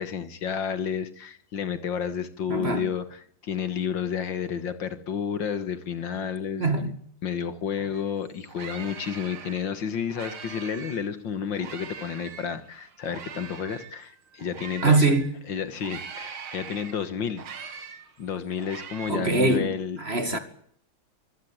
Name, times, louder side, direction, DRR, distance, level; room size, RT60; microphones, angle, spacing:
voice 1, 0.0-6.9 7.2-15.1 15.5-17.4 18.2-20.0 20.3-20.4, left 7 dB, 65° left, 2.1 m, -31 dB
voice 2, 2.5-2.9 6.6-7.0 14.8-15.3 19.1-20.4, right 3 dB, 30° right, 2.3 m, -23 dB
sound 1, 7.9-8.0 8.3-11.1 11.5-15.3 15.8-19.1, right 7 dB, 85° right, 2.5 m, -42 dB
24.5 x 16.0 x 8.8 m
omnidirectional pair, 2.2 m